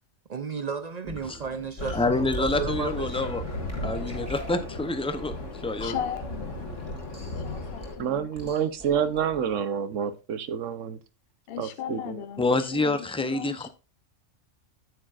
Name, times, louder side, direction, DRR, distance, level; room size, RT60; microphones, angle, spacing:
voice 1, 0.3-3.4, right 5 dB, 55° right, 0.5 m, -34 dB
sound 1, 1.0-9.6, equal, 10° right, 2.0 m, -43 dB
sound 2, 1.8-7.9, left 2 dB, 75° left, 2.3 m, -35 dB
voice 2, 1.9-3.4 3.8-5.3 5.6-6.0 12.4-13.7, left 2 dB, 5° left, 0.5 m, -27 dB
voice 3, 5.8-6.6 7.4-8.5 11.5-13.7, left 9 dB, 55° left, 0.8 m, -37 dB
voice 4, 8.0-11.0 11.6-12.2, right 8 dB, 80° right, 1.1 m, -28 dB
9.0 x 8.8 x 2.5 m
omnidirectional pair, 1.3 m